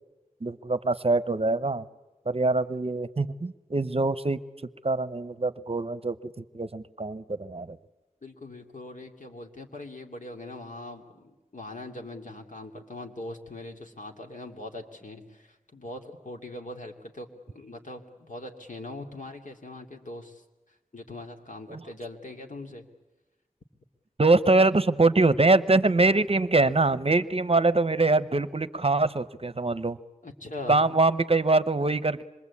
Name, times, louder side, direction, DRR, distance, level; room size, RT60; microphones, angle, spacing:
voice 1, 0.4-1.8 2.3-4.4 4.8-7.8 21.7-21.8 24.2-30.0 30.7-32.2, right 3 dB, 45° right, 15 dB, 0.8 m, -23 dB
voice 2, 8.2-22.9 30.2-30.8, left 2 dB, 65° left, 3 dB, 2.7 m, -41 dB
26.0 x 23.0 x 8.5 m, 1.1 s
wide cardioid pair, 55°, 14 cm